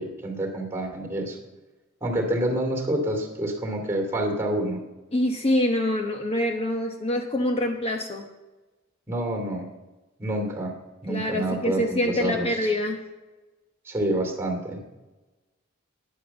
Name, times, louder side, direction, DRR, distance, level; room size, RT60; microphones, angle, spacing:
voice 1, 0.0-1.4 2.0-4.8 9.1-9.7 10.2-10.7 11.0-12.5 13.9-14.8, right 1 dB, 15° right, 3 dB, 2.5 m, -27 dB
voice 2, 5.1-8.2 11.1-13.0, left 1 dB, 30° left, 3 dB, 0.9 m, -25 dB
10.5 x 9.9 x 7.1 m, 1.1 s
head